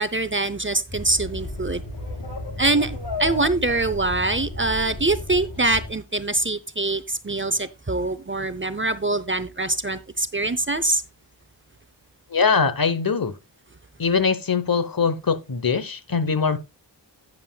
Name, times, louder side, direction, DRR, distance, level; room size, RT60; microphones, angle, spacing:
voice 1, 0.0-1.8 2.6-11.0, right 2 dB, 25° right, 0.7 m, -24 dB
sound 1, 0.9-5.9, left 2 dB, 70° left, 2.8 m, -33 dB
voice 2, 12.3-13.3 14.0-16.6, left 5 dB, 50° left, 1.0 m, -22 dB
11.0 x 9.4 x 2.3 m
wide cardioid pair, 70°, 45 cm